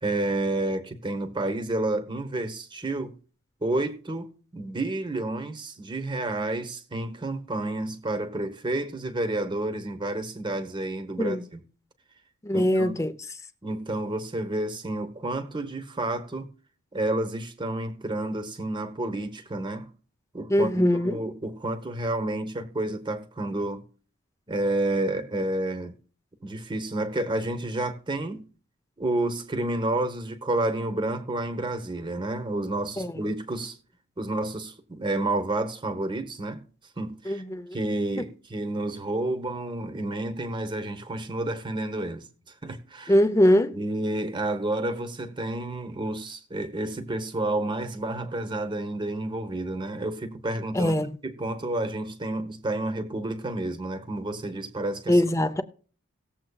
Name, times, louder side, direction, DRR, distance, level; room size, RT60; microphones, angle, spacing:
voice 1, 0.0-3.2 3.6-11.6 12.5-13.1 13.6-16.5 16.9-19.9 20.3-23.8 24.5-25.9 26.4-28.5 29.0-33.8 34.2-36.6 37.0-37.4 37.7-43.2 43.7-55.2, right 2 dB, 20° right, 1.0 m, -30 dB
voice 2, 12.4-13.1 20.5-21.2 33.0-33.1 37.3-37.8 38.2-38.3 43.1-43.8 50.7-51.1 55.1-55.6, left 1 dB, 15° left, 0.6 m, -22 dB
18.5 x 7.5 x 2.3 m
head